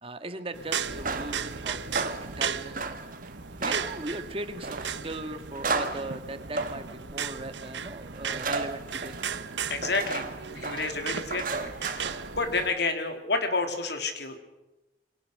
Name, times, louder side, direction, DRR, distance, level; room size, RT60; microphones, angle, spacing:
voice 1, 0.0-2.8 3.6-9.2, right 2 dB, 30° right, 9 dB, 1.7 m, -38 dB
sound 1, 0.5-12.7, right 7 dB, 75° right, 1.0 m, -36 dB
sound 2, 0.8-12.7, right 3 dB, 45° right, 1.7 m, -35 dB
voice 2, 9.7-14.4, left 3 dB, 65° left, 6 dB, 3.1 m, -30 dB
27.5 x 24.0 x 6.6 m, 0.97 s
head